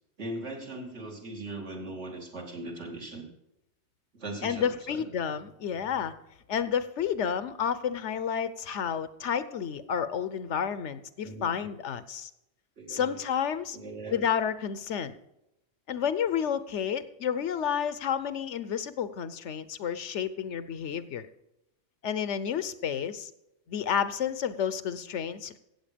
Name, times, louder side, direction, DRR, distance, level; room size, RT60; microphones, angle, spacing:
voice 1, 0.2-3.3 4.1-5.0 11.2-11.7 12.8-13.2 13.7-14.2, right 2 dB, 70° right, 0 dB, 2.7 m, -39 dB
voice 2, 4.4-6.1 6.5-12.3 12.9-13.8 14.1-15.1 15.9-21.3 22.0-23.3 23.7-25.6, left 8 dB, 75° left, 14 dB, 1.1 m, -30 dB
15.5 x 8.0 x 5.1 m, 0.86 s
omnidirectional pair, 1.2 m